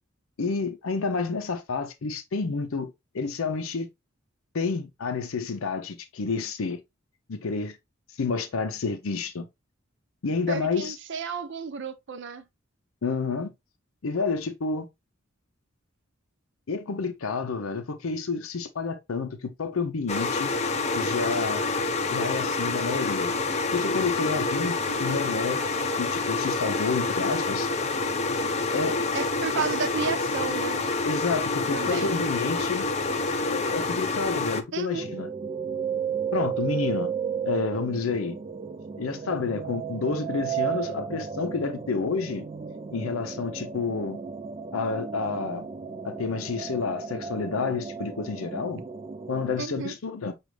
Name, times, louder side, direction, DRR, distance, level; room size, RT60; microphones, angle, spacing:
voice 1, 0.4-3.9 4.5-6.8 7.3-7.8 8.2-9.5 10.2-11.0 13.0-13.5 14.0-14.9 16.7-20.5 20.9-21.6 22.1-23.3 23.7-25.6 26.0-27.7 28.7-29.0 29.5-29.6 31.0-32.9 33.4-35.3 36.3-37.1 37.4-38.4 39.0-42.5 42.9-44.2 44.7-45.7 46.0-48.8 49.3-50.3, left 4 dB, 90° left, 0.6 m, -29 dB
voice 2, 10.5-12.4 24.9-25.2 29.1-30.8 31.7-32.1 34.7-35.1 49.6-49.9, right 5 dB, 60° right, 0.6 m, -32 dB
sound 1, 20.1-34.6, left 3 dB, 35° left, 0.5 m, -27 dB
sound 2, 35.0-49.6, right 7 dB, 30° right, 0.3 m, -34 dB
6.2 x 2.4 x 3.2 m
head